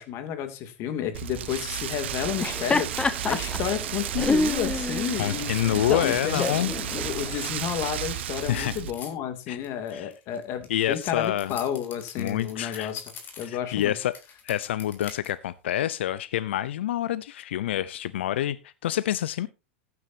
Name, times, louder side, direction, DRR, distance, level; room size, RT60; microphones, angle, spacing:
voice 1, 0.0-13.0 13.4-14.0, left 10 dB, 45° left, 9 dB, 2.7 m, -31 dB
Rain, 1.1-8.9, right 11 dB, 80° right, 1.1 m, -33 dB
Laughter, 2.3-7.5, left 3 dB, 15° left, 0.9 m, -29 dB
voice 2, 5.2-6.7 8.5-8.8 9.5-9.6 9.9-10.1 10.7-11.5 12.2-12.9 13.4-14.1 14.4-19.5, left 12 dB, 80° left, 17 dB, 0.7 m, -27 dB
sound 1, 6.9-9.1 9.6-13.8 14.1-15.3, left 6 dB, 30° left, 3.8 m, -46 dB
15.0 x 9.6 x 2.8 m, 0.26 s
hypercardioid pair, 115°, 6 cm